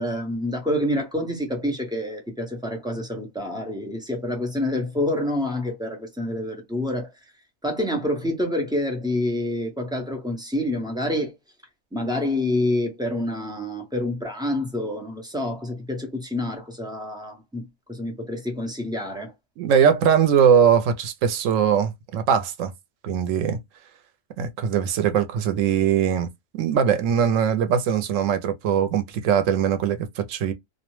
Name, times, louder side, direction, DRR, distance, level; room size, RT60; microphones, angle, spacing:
voice 1, 0.0-7.1 7.6-11.3 11.9-19.3, left 1 dB, 5° right, 0.6 m, -27 dB
voice 2, 19.6-22.7 23.0-23.6 24.4-30.5, right 8 dB, 90° right, 1.0 m, -21 dB
2.5 x 2.1 x 3.0 m
omnidirectional pair, 1.3 m